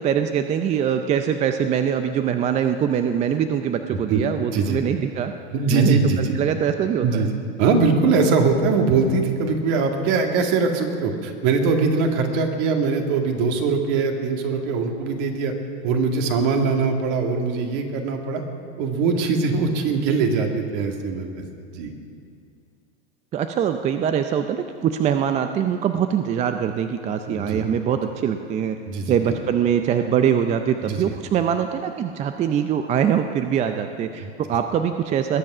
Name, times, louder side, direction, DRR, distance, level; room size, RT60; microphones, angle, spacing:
voice 1, 0.0-5.3 5.7-7.3 23.3-28.8 29.1-35.4, right 8 dB, 20° right, 7 dB, 0.4 m, -23 dB
voice 2, 4.1-4.8 5.5-6.3 7.0-7.3 7.6-15.5 15.8-18.4 18.8-21.4 21.7-21.9 27.3-27.6 28.9-29.2 30.8-31.1 34.2-34.3, right 4 dB, 55° right, 3 dB, 2.0 m, -22 dB
21.0 x 7.6 x 6.1 m, 2.3 s
hypercardioid pair, 115°, 34 cm